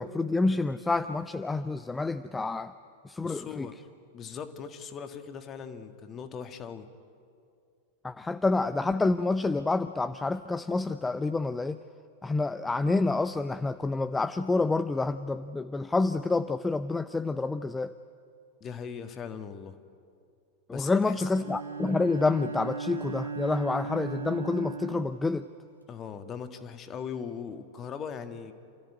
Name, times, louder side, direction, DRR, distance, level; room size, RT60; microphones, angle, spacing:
voice 1, 0.0-2.7 3.0-3.7 8.0-11.8 12.2-17.9 20.7-25.5, left 3 dB, 10° left, 11 dB, 0.6 m, -28 dB
voice 2, 3.2-3.7 4.1-6.9 18.6-19.8 20.7-21.3 25.9-28.5, left 7 dB, 30° left, 8 dB, 1.7 m, -39 dB
Bowed string instrument, 21.3-26.0, right 5 dB, 80° right, 1.7 m, -38 dB
28.5 x 14.5 x 9.8 m, 2.4 s
figure-of-eight pair, 90°, 0 cm